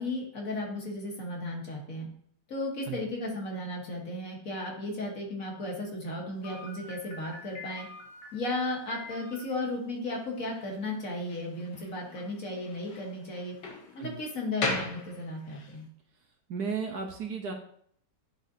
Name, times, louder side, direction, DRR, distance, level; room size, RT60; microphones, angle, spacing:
voice 1, 0.0-2.1 2.5-7.9 8.3-13.5 13.9-15.9, left 2 dB, 50° left, -1 dB, 1.6 m, -35 dB
Slam, 6.4-15.8, left 3 dB, 70° left, 1.8 m, -40 dB
voice 2, 16.5-17.5, right 5 dB, 65° right, 3 dB, 1.2 m, -34 dB
10.0 x 4.0 x 2.7 m, 0.63 s
omnidirectional pair, 2.0 m